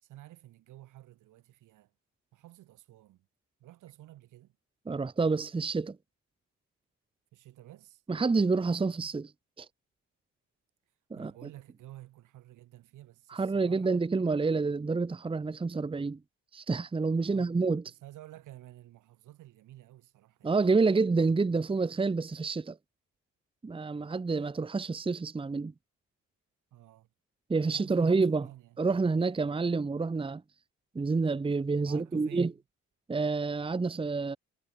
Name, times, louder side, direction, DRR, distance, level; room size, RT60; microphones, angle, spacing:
voice 1, 0.0-1.9 2.3-3.3 3.6-4.6 7.3-8.0 11.1-14.0 17.2-17.7 18.0-21.1 26.7-27.1 27.7-28.8 31.8-32.6, right 15 dB, 85° right, 4.2 m, -52 dB
voice 2, 4.9-6.0 8.1-9.3 9.6-9.7 11.1-11.3 13.3-16.2 16.5-17.8 20.4-22.8 23.6-25.7 27.5-28.5 28.8-30.4 30.9-32.5 33.1-34.4, right 4 dB, 15° right, 0.9 m, -28 dB
cardioid pair, 90°, 30 cm